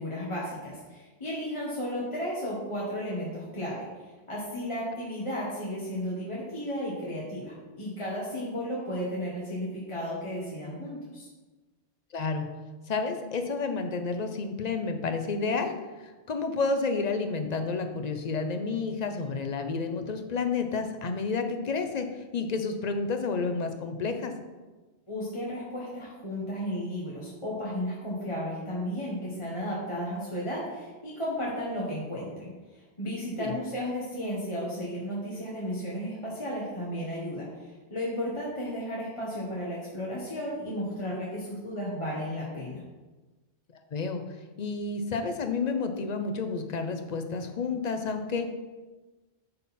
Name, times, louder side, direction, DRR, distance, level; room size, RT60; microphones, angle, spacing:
voice 1, 0.0-11.3 25.1-42.8, equal, 30° left, -6 dB, 1.4 m, -34 dB
voice 2, 12.1-12.5 12.9-22.1 22.3-24.3 33.4-33.5 43.9-44.2 44.6-48.4, left 4 dB, 45° left, 6 dB, 0.7 m, -30 dB
10.5 x 3.9 x 4.2 m, 1.2 s
omnidirectional pair, 1.1 m